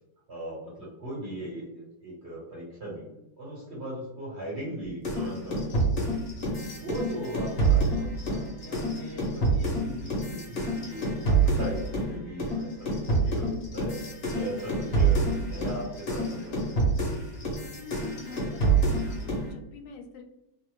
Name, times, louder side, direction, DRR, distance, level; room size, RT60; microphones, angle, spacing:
voice 1, 0.3-3.1 3.4-6.0 6.6-14.0 14.3-16.7, right 1 dB, 40° right, -6 dB, 1.4 m, -39 dB
sound 1, 5.0-12.1 12.4-19.5, right 3 dB, 60° left, 1.3 m, -27 dB
voice 2, 17.8-20.2, left 4 dB, 80° left, 5 dB, 1.2 m, -46 dB
3.2 x 2.4 x 3.0 m, 0.89 s
omnidirectional pair, 2.0 m